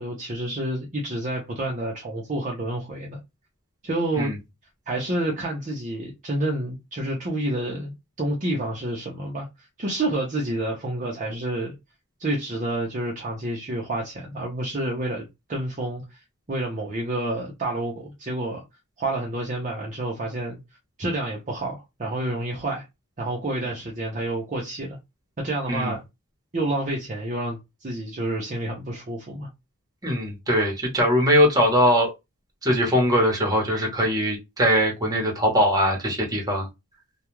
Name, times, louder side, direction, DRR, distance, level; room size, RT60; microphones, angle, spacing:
voice 1, 0.0-3.2 3.8-4.3 4.9-9.5 9.8-11.7 12.2-16.0 16.5-18.6 19.0-20.6 21.0-22.8 23.2-25.0 25.4-26.0 26.5-29.5, right 1 dB, 35° right, 0.6 m, -29 dB
voice 2, 30.0-32.1 32.6-36.7, equal, 15° right, 1.0 m, -21 dB
2.3 x 2.3 x 3.0 m
head